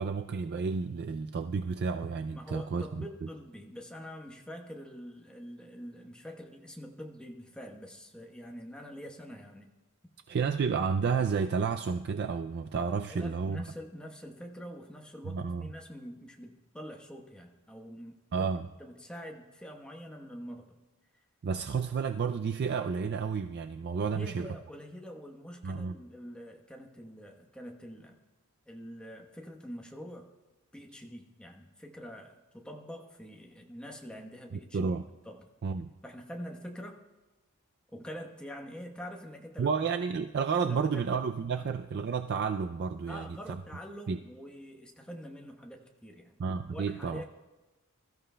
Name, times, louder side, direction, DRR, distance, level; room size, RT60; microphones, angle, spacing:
voice 1, 0.0-3.0 10.3-13.6 15.2-15.7 18.3-18.6 21.4-24.5 25.6-25.9 34.5-35.0 35.6-35.9 39.6-43.6 44.1-44.2 46.4-47.2, right 5 dB, 50° right, 8 dB, 0.3 m, -31 dB
voice 2, 2.3-9.7 13.1-20.7 24.1-28.2 28.7-30.3 30.7-35.0 35.2-35.5 36.0-37.0 37.9-39.8 40.6-41.0 43.1-46.4 46.7-47.2, equal, 5° left, 2 dB, 1.0 m, -45 dB
22.0 x 13.5 x 2.2 m, 1.1 s
head